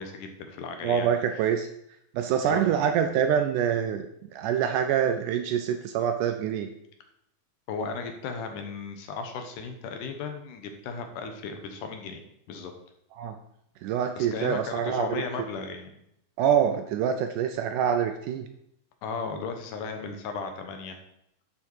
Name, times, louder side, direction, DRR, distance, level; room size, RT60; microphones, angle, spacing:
voice 1, 0.0-1.4 2.4-2.7 7.7-12.7 14.2-16.0 19.0-21.0, left 5 dB, 75° left, 5 dB, 2.3 m, -36 dB
voice 2, 0.8-1.7 2.2-4.1 4.3-6.7 13.2-13.4 13.8-15.2 16.4-18.5, right 8 dB, 80° right, 6 dB, 1.9 m, -25 dB
11.5 x 4.9 x 4.5 m, 0.76 s
omnidirectional pair, 4.0 m